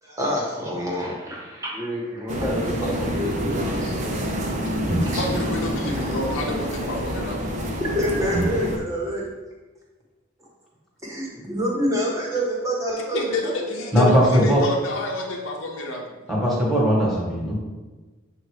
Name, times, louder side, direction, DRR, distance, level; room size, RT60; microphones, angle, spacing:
voice 1, 0.0-4.0 5.1-5.3 5.8-5.9 7.8-9.2 11.0-13.6, equal, 15° right, -3 dB, 1.2 m, -27 dB
sound 1, 2.3-8.8, equal, 35° right, 0.6 m, -27 dB
voice 2, 5.1-7.5 13.1-16.2, left 1 dB, 85° left, -1 dB, 0.8 m, -29 dB
voice 3, 13.9-14.6 16.3-17.6, equal, ahead, -5 dB, 1.5 m, -19 dB
7.8 x 2.6 x 4.8 m, 1.2 s
head